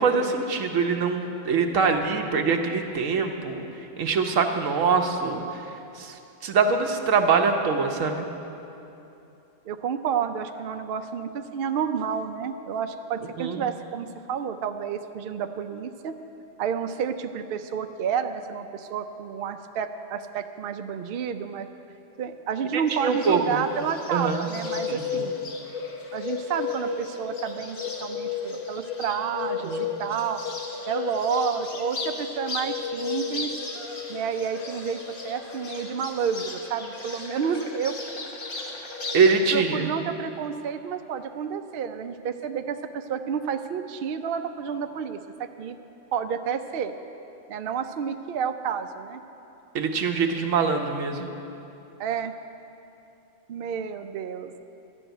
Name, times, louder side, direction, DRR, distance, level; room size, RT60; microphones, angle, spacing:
voice 1, 0.0-3.7 4.0-5.4 6.0-6.1 6.4-8.2 13.4-13.6 22.7-23.6 24.1-24.5 24.9-25.2 29.6-29.8 39.1-39.9 49.7-51.3, right 5 dB, 90° right, 4 dB, 1.3 m, -23 dB
voice 2, 9.7-16.2 16.6-21.7 22.2-25.4 26.1-30.4 30.9-33.5 34.1-35.0 35.2-38.0 39.5-45.8 46.1-46.9 47.5-49.2 52.0-52.3 53.5-54.6, right 7 dB, 60° right, 7 dB, 0.7 m, -30 dB
Bird, 22.9-39.3, left 5 dB, 45° left, 1.3 m, -34 dB
12.5 x 6.2 x 9.0 m, 2.8 s
omnidirectional pair, 1.3 m